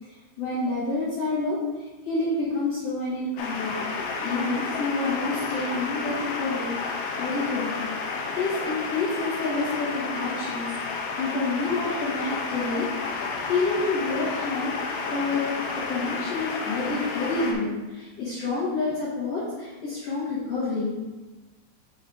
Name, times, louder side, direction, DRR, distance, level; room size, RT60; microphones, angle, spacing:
voice 1, 0.1-6.7 7.2-7.8 8.3-14.7 15.1-15.4 15.7-20.9, left 3 dB, 55° left, -9 dB, 2.0 m, -29 dB
sound 1, 3.4-17.5, left 4 dB, 75° left, 2.2 m, -31 dB
6.9 x 4.1 x 3.8 m, 1.2 s
omnidirectional pair, 4.3 m